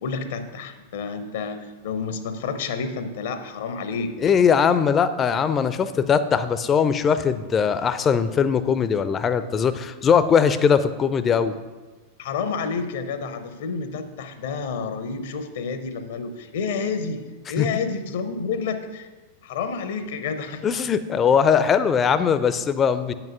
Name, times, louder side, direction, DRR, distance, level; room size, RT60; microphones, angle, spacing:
voice 1, 0.0-4.2 12.2-19.1 19.4-20.7, left 5 dB, 55° left, 10 dB, 0.7 m, -29 dB
voice 2, 4.2-11.5 17.6-17.7 20.6-23.1, left 7 dB, 25° left, 13 dB, 0.5 m, -20 dB
9.0 x 6.0 x 5.4 m, 1.3 s
figure-of-eight pair, 90°, 0 cm